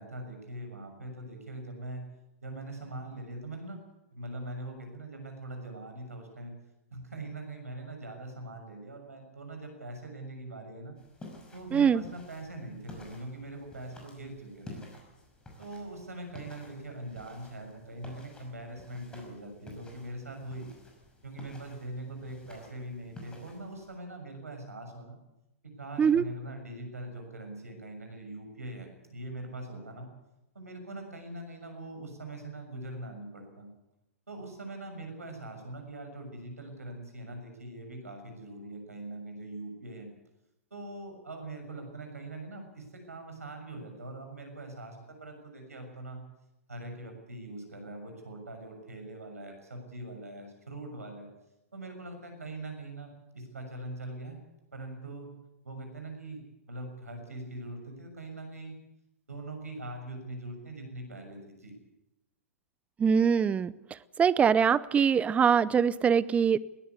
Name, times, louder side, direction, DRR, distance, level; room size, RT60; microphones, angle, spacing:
voice 1, 0.0-2.0 2.4-3.8 4.1-6.5 6.9-11.0 11.5-14.8 15.6-20.7 21.2-25.2 25.6-30.1 30.5-33.7 34.3-40.1 40.7-46.2 46.7-51.3 51.7-54.4 54.7-55.3 55.6-58.7 59.3-61.7, right 2 dB, 80° right, 5 dB, 6.7 m, -42 dB
sound 1, 11.0-24.0, left 1 dB, 10° left, 5.9 m, -52 dB
voice 2, 11.7-12.0 26.0-26.2 63.0-63.7 64.2-66.6, right 7 dB, 15° right, 18 dB, 0.7 m, -23 dB
21.5 x 17.0 x 8.4 m, 0.93 s
figure-of-eight pair, 110°, 8 cm